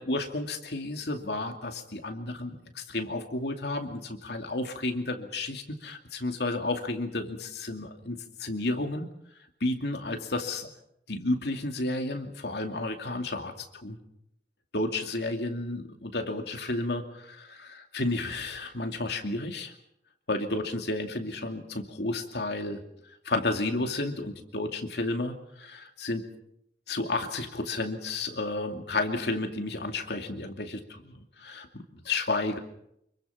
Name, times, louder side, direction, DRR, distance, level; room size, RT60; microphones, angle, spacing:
voice 1, 0.0-9.1 9.6-10.7 11.1-14.0 14.7-19.7 20.3-22.8 23.2-26.2 26.9-32.6, left 2 dB, 70° left, 5 dB, 2.6 m, -32 dB
26.0 x 23.0 x 5.8 m, 0.76 s
head